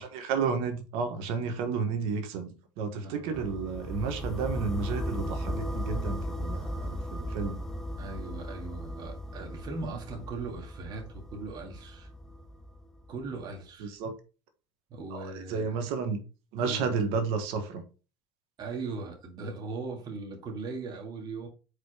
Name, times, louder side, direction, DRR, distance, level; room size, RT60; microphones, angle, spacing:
voice 1, 0.0-7.6 13.8-14.1 15.1-15.2 15.5-16.2 16.5-17.8, right 5 dB, 75° right, 1.5 m, -32 dB
sound 1, 3.3-13.3, equal, 5° left, 0.8 m, -36 dB
voice 2, 8.0-12.1 13.1-13.9 14.9-15.8 16.6-16.9 18.6-21.5, right 3 dB, 45° right, 2.1 m, -39 dB
5.2 x 4.2 x 4.9 m
supercardioid pair, 100°, 10 cm